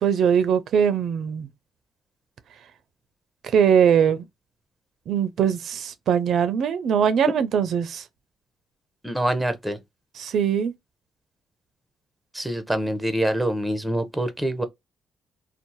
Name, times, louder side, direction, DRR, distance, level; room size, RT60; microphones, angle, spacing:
voice 1, 0.0-1.5 3.4-4.2 5.1-8.0 10.2-10.7, right 7 dB, 70° right, 0.4 m, -21 dB
voice 2, 9.0-9.8 12.3-14.6, right 1 dB, 5° right, 0.6 m, -25 dB
2.6 x 2.0 x 3.0 m
cardioid pair, 90°, 0 cm